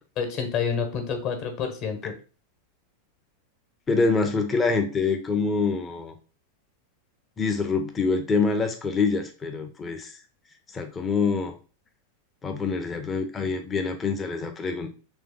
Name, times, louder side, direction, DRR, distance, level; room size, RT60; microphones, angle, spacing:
voice 1, 0.2-2.2, left 6 dB, 40° left, 5 dB, 1.2 m, -28 dB
voice 2, 3.9-6.1 7.4-10.1 10.7-11.5 12.4-14.9, left 4 dB, 20° left, 5 dB, 0.7 m, -25 dB
3.5 x 3.3 x 3.7 m, 0.36 s
figure-of-eight pair, 90°, 0 cm